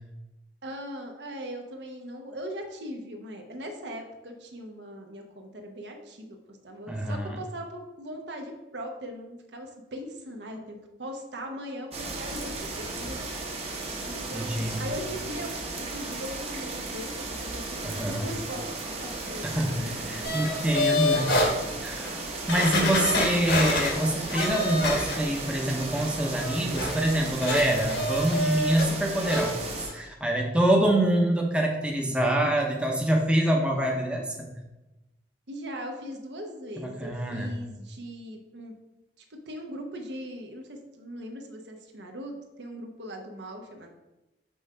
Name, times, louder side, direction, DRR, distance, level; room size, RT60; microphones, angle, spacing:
voice 1, 0.6-13.2 14.0-18.6 19.0-20.5 20.8-21.0 32.4-32.7 35.5-38.7 39.3-42.3 42.6-43.9, equal, 75° right, 3 dB, 0.9 m, -40 dB
voice 2, 6.9-7.4 14.3-14.8 17.8-18.3 19.4-21.4 21.8-22.2 22.5-34.5 36.8-37.5, right 1 dB, 5° right, 0 dB, 0.7 m, -26 dB
sound 1, 11.9-29.9, right 3 dB, 35° right, 0.9 m, -36 dB
sound 2, 20.2-21.5 22.0-22.1 22.5-25.5 25.8-28.9 29.2-29.5 29.9-30.0, left 1 dB, 70° left, 1.4 m, -28 dB
5.5 x 3.7 x 5.5 m, 1.0 s
head